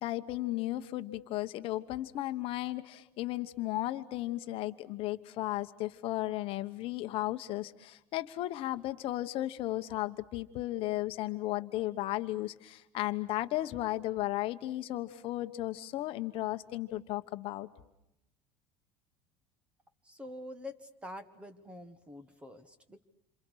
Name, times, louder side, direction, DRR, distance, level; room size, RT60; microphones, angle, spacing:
voice 1, 0.0-17.7, left 16 dB, 45° left, 9 dB, 1.1 m, -35 dB
voice 2, 20.0-23.0, left 1 dB, 10° right, 11 dB, 1.5 m, -46 dB
28.0 x 27.5 x 6.4 m, 0.85 s
cardioid pair, 170°, 13 cm